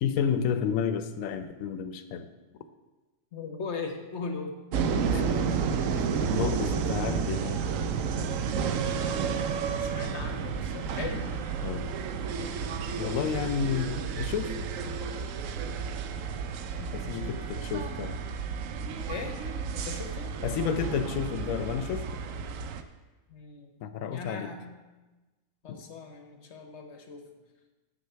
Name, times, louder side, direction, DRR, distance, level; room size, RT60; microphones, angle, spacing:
voice 1, 0.0-2.3 5.1-5.2 6.0-6.1 6.3-7.6 11.6-11.9 12.9-14.5 16.9-18.2 20.4-22.2 23.8-24.5 25.7-25.8, left 7 dB, 85° left, 10 dB, 1.0 m, -31 dB
voice 2, 3.3-4.6 8.9-9.5 9.8-11.3 16.7-17.6 19.1-19.4 19.7-20.4 23.3-23.8 24.1-24.9 25.6-27.2, left 4 dB, 60° left, 6 dB, 1.2 m, -39 dB
sound 1, 4.7-22.8, right 6 dB, 80° right, 1.0 m, -31 dB
7.9 x 6.5 x 5.6 m, 1.2 s
omnidirectional pair, 1.4 m